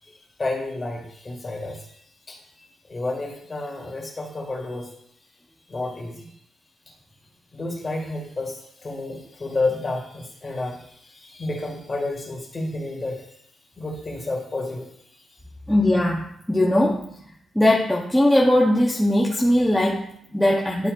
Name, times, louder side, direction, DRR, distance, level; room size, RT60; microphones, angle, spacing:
voice 1, 0.0-4.9 5.7-6.3 7.5-13.4 13.8-15.4, left 2 dB, 25° left, -1 dB, 1.8 m, -31 dB
voice 2, 15.7-17.1 17.5-20.9, left 1 dB, ahead, -3 dB, 0.7 m, -20 dB
11.0 x 4.2 x 2.4 m, 0.69 s
cardioid pair, 135°, 0 cm